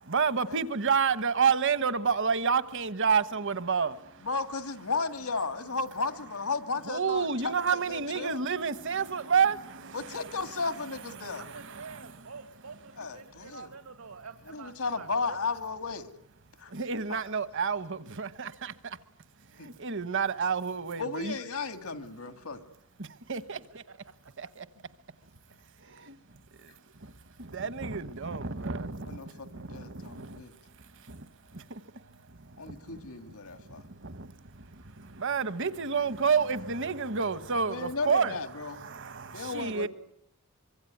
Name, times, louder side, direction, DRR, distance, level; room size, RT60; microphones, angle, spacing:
voice 1, 0.0-4.3 6.8-10.4 10.7-10.8 11.2-12.0 16.7-19.0 19.5-21.3 23.0-23.8 24.4-24.7 25.8-26.2 27.0-27.1 27.4-30.4 31.0-31.8 32.3-33.0 33.6-38.3 38.6-39.9, right 6 dB, 60° right, 1.3 m, -30 dB
voice 2, 4.2-8.4 9.9-11.4 13.0-13.7 14.5-16.1 16.6-16.7 17.1-17.2 19.6-19.7 21.0-22.6 29.0-30.5 32.6-33.8 37.7-38.8 39.3-39.9, left 4 dB, 90° left, 2.2 m, -34 dB
voice 3, 11.3-15.5, right 4 dB, 80° right, 2.3 m, -47 dB
25.0 x 23.5 x 9.4 m
head